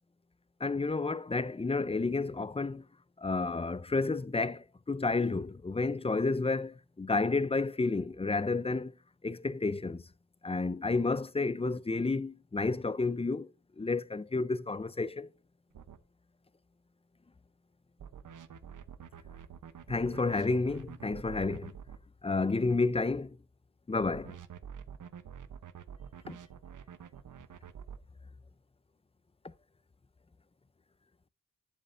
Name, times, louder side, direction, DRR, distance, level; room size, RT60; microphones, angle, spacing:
voice 1, 0.6-2.8 3.2-8.9 9.2-10.0 10.4-13.5 13.8-15.3 19.9-21.7 22.2-23.4 23.9-24.4 26.3-26.4, left 3 dB, 20° left, 0.5 m, -31 dB
sound 1, 15.7-16.0 18.0-22.0 24.0-28.0, right 8 dB, 70° right, 0.9 m, -47 dB
11.0 x 8.9 x 2.6 m
cardioid pair, 60°, 32 cm